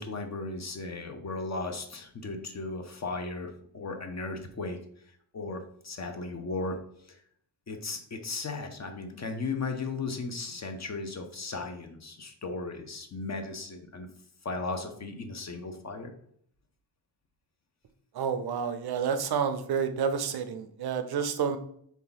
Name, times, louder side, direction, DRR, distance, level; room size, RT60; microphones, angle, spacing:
voice 1, 0.0-4.8 5.3-6.8 7.1-7.2 7.7-14.1 14.4-16.1, left 3 dB, 35° left, 5 dB, 0.7 m, -36 dB
voice 2, 18.1-21.6, right 6 dB, 55° right, 8 dB, 0.5 m, -29 dB
3.5 x 2.8 x 3.9 m, 0.65 s
cardioid pair, 90°, 47 cm